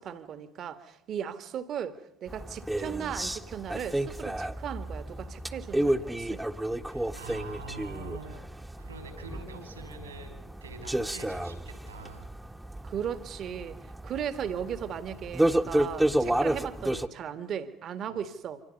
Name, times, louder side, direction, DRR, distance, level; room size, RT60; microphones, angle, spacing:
voice 1, 0.0-6.6 9.5-9.7 12.8-18.6, right 8 dB, 50° right, 2.0 m, -37 dB
sound 1, 2.3-17.1, right 1 dB, 5° right, 1.5 m, -31 dB
voice 2, 6.9-8.4 8.8-12.3 18.1-18.2, right 4 dB, 85° right, 5.6 m, -45 dB
29.5 x 26.0 x 5.5 m
figure-of-eight pair, 55°, 0 cm